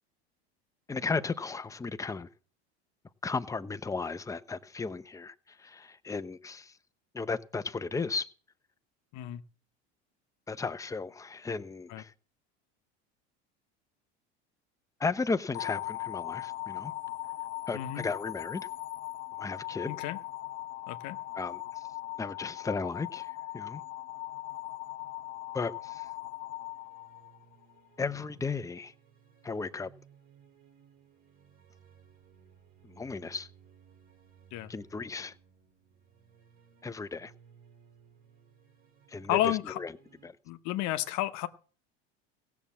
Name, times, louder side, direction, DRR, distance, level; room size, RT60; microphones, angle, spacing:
voice 1, 0.9-2.3 3.2-6.7 7.1-8.3 10.5-12.1 15.0-16.9 17.7-18.7 19.4-19.9 21.3-21.6 22.2-23.8 25.5-26.1 28.0-28.9 29.4-29.9 32.8-33.5 34.7-35.3 36.8-37.3 39.1-39.9 40.2-40.3, left 4 dB, 10° left, 0.7 m, -35 dB
sound 1, 15.5-27.7, left 16 dB, 85° left, 0.9 m, -39 dB
voice 2, 17.7-18.1 19.9-20.2 20.9-21.2 34.5-34.7 39.3-39.8 40.5-41.5, left 13 dB, 60° left, 1.0 m, -31 dB
sound 2, 26.5-40.3, right 7 dB, 85° right, 3.1 m, -60 dB
16.0 x 7.1 x 7.4 m
supercardioid pair, 95°, 33 cm